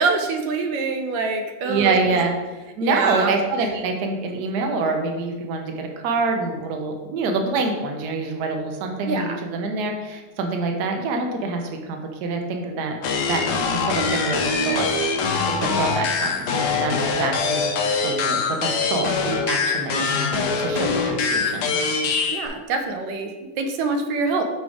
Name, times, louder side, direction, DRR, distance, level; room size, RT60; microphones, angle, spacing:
voice 1, 0.0-2.2 2.8-3.3 9.1-9.4 22.3-24.4, right 4 dB, 85° right, 5 dB, 1.3 m, -25 dB
voice 2, 1.6-2.3 2.8-13.0 13.3-14.9 15.6-17.7 18.0-21.8, right 3 dB, 65° right, 3 dB, 1.2 m, -26 dB
sound 1, 13.0-22.5, left 4 dB, 70° left, 1.2 m, -23 dB
5.0 x 4.0 x 4.8 m, 1.2 s
omnidirectional pair, 2.0 m